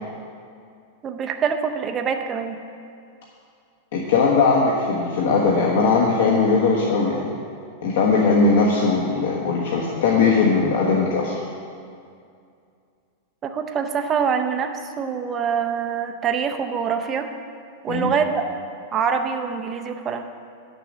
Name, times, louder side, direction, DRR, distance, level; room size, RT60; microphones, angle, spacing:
voice 1, 1.0-2.6 13.4-14.7 15.0-17.3 17.8-18.5 18.9-20.2, right 6 dB, 20° right, 5 dB, 0.6 m, -24 dB
voice 2, 3.9-7.3 7.8-11.3 17.9-18.1, left 4 dB, 65° left, -3 dB, 1.3 m, -19 dB
10.0 x 6.8 x 6.2 m, 2.4 s
supercardioid pair, 165°, 0 cm